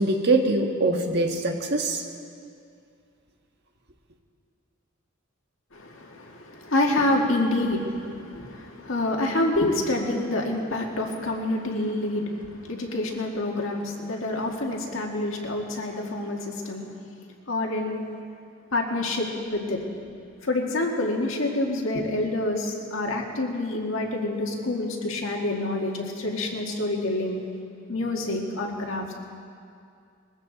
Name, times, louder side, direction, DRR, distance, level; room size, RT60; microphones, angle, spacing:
voice 1, 0.0-2.0, right 2 dB, 55° right, 3 dB, 1.5 m, -23 dB
voice 2, 5.7-16.9 17.5-18.0 18.7-19.8 20.4-27.4 27.9-29.1, left 2 dB, 75° left, 0 dB, 2.0 m, -27 dB
21.0 x 15.0 x 4.1 m, 2.4 s
head